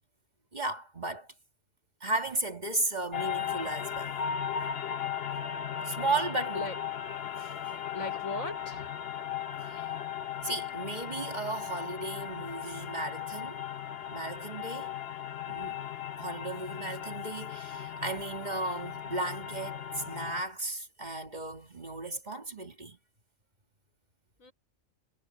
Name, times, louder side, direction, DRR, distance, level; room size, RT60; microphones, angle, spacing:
voice 1, 0.5-1.3 2.0-4.2 5.8-6.7 7.4-7.8 9.6-9.8 10.4-13.6 14.1-14.9 15.5-15.8 16.2-23.0, right 2 dB, 35° right, 2.0 m, -35 dB
sound 1, 3.1-20.4, left 8 dB, 55° left, 1.0 m, -37 dB
voice 2, 7.9-9.0 24.4-24.5, left 2 dB, 90° left, 5.5 m, -38 dB
omnidirectional pair, 1.4 m